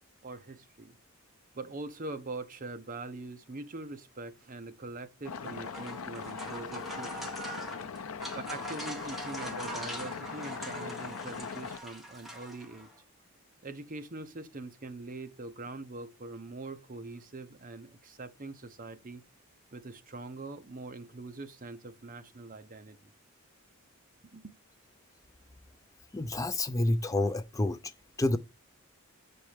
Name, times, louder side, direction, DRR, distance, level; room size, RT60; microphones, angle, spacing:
voice 1, 0.2-0.9 1.5-7.3 8.3-12.9 13.6-19.2 19.7-23.0 24.3-24.5, right 2 dB, 40° right, 0.8 m, -43 dB
sound 1, 5.2-11.8, left 6 dB, 75° left, 0.6 m, -40 dB
sound 2, 5.3-13.0, right 1 dB, ahead, 1.4 m, -43 dB
voice 2, 26.1-27.9 28.2-28.4, left 2 dB, 15° left, 0.3 m, -29 dB
7.4 x 4.4 x 5.0 m
head